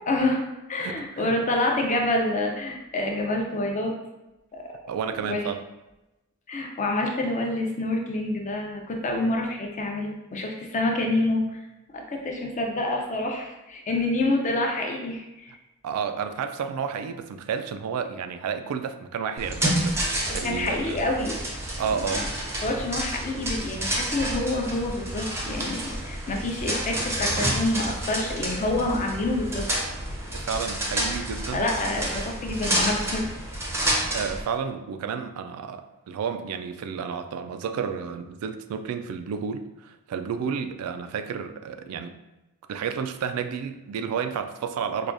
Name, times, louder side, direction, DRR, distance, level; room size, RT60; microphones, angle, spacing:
voice 1, 0.1-0.4 0.7-3.9 4.5-4.7 5.2-5.4 6.5-11.6 11.9-15.5 20.2-21.4 21.8-22.3 22.6-29.6 31.1-31.2 31.5-33.3, left 2 dB, 35° left, 1 dB, 0.5 m, -27 dB
voice 2, 0.8-1.4 4.9-5.6 15.8-21.0 21.8-22.3 30.3-31.6 34.1-42.2 42.7-45.1, right 6 dB, 85° right, 13 dB, 0.3 m, -31 dB
sound 1, 19.4-34.4, right 1 dB, 10° right, 0.5 m, -29 dB
4.6 x 2.3 x 2.5 m, 1.0 s
head